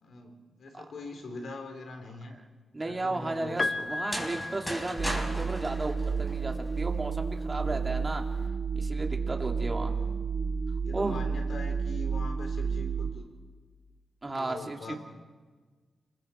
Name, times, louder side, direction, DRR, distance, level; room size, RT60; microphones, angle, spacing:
voice 1, 0.0-2.4 2.8-3.7 9.8-10.3 10.8-13.3 14.4-15.0, left 2 dB, 75° left, 4 dB, 3.4 m, -42 dB
voice 2, 2.7-8.2 8.7-10.0 10.9-11.2 14.2-15.0, right 2 dB, 30° right, 2 dB, 2.6 m, -34 dB
Piano, 3.6-5.6 6.9-7.0, left 2 dB, 30° left, 0.9 m, -34 dB
sound 1, 3.9-6.8, equal, 5° left, 4.3 m, -37 dB
sound 2, 5.0-13.1, right 5 dB, 50° right, 1.7 m, -31 dB
29.5 x 21.0 x 4.4 m, 1.4 s
cardioid pair, 80°, 0 cm